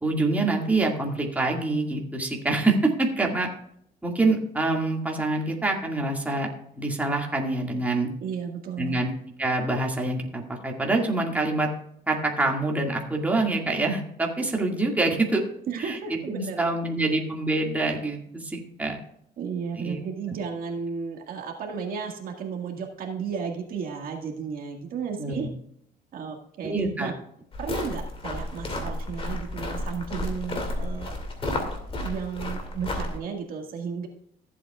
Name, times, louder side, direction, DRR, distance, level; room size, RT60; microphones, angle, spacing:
voice 1, 0.0-3.5 4.0-6.5 6.7-8.1 8.8-9.1 9.4-11.7 12.1-15.4 15.8-16.0 16.3-19.0 19.8-20.0 25.2-25.5 26.6-27.1, right 2 dB, 10° right, 0 dB, 2.1 m, -26 dB
voice 2, 8.2-9.0 15.7-17.2 19.4-25.5 26.1-27.1 27.6-31.1 32.0-34.1, right 6 dB, 60° right, 2 dB, 1.9 m, -34 dB
sound 1, 27.5-33.2, left 1 dB, 35° left, 2.4 m, -32 dB
15.0 x 8.3 x 2.4 m, 0.70 s
cardioid pair, 110°, 17 cm